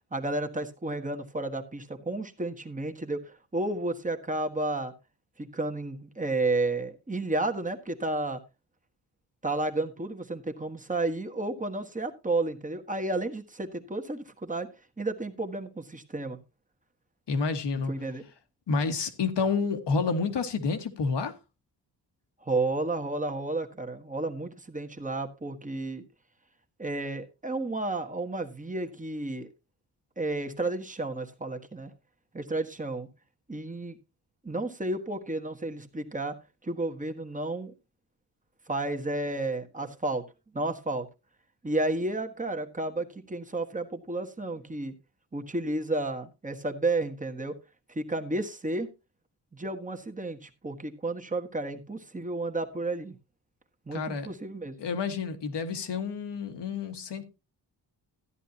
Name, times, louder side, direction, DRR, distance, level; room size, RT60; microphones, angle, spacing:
voice 1, 0.1-4.9 5.4-8.4 9.4-14.7 15.0-16.4 17.9-18.2 22.4-26.0 26.8-29.5 30.2-31.9 32.3-33.1 33.5-34.0 34.4-36.3 36.6-37.7 38.7-40.2 40.5-41.1 41.6-44.9 45.3-47.5 47.9-48.9 49.5-53.2 53.9-54.8, right 2 dB, 20° right, 1.5 m, -32 dB
voice 2, 17.3-17.9 18.7-21.3 53.9-54.3 54.8-57.2, left 4 dB, 75° left, 1.7 m, -29 dB
14.0 x 10.0 x 2.8 m
cardioid pair, 85°, 42 cm